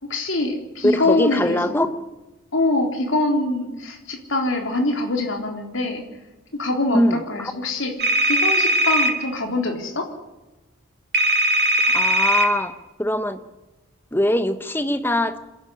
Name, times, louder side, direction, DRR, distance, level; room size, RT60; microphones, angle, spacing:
voice 1, 0.0-1.8 2.5-6.0 6.5-7.9 8.2-10.1, left 2 dB, 65° left, 2 dB, 3.8 m, -24 dB
voice 2, 0.8-1.9 6.9-7.5 11.9-12.7 13.0-13.4 14.1-15.4, left 1 dB, 10° left, 10 dB, 1.1 m, -21 dB
sound 1, 8.0-9.1 11.1-12.5, right 1 dB, 50° right, 2.3 m, -19 dB
27.0 x 11.0 x 10.0 m, 1.1 s
head